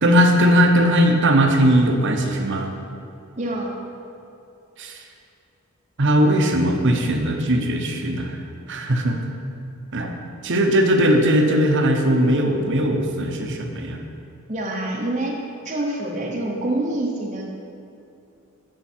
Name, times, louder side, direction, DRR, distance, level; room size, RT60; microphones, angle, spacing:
voice 1, 0.0-2.7 4.8-5.0 6.0-8.4 8.7-9.2 9.9-10.1 10.4-14.0, equal, 60° right, 3 dB, 1.0 m, -19 dB
voice 2, 3.4-3.8 14.5-15.4 15.6-17.7, right 1 dB, 35° right, -2 dB, 1.0 m, -26 dB
15.0 x 5.5 x 4.5 m, 2.7 s
head